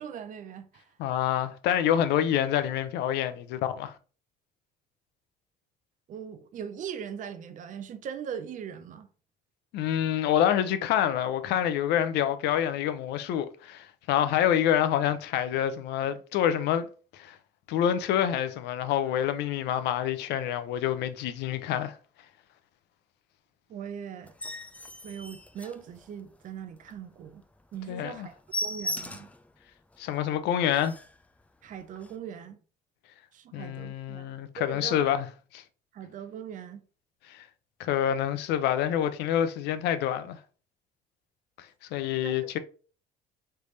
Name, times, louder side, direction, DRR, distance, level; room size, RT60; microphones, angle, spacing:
voice 1, 0.0-0.9 6.1-9.1 23.7-24.3 25.0-27.4 27.7-29.3 31.6-32.6 33.3-34.3 34.6-35.0 35.9-36.8 42.2-42.6, right 8 dB, 50° right, 0.6 m, -40 dB
voice 2, 1.0-3.9 9.7-17.4 17.7-21.9 27.9-28.3 30.0-31.0 33.5-35.3 35.5-35.6 37.3-37.4 37.8-40.4 41.9-42.6, left 10 dB, 80° left, 0.5 m, -27 dB
sound 1, 24.2-26.4 26.8-27.0 27.3-27.4 27.7-27.9 28.1-29.4 29.9-30.0 30.4-30.5 30.7-31.2 31.9-32.1, left 1 dB, 10° left, 0.4 m, -37 dB
3.4 x 3.3 x 4.0 m
cardioid pair, 110°, 17 cm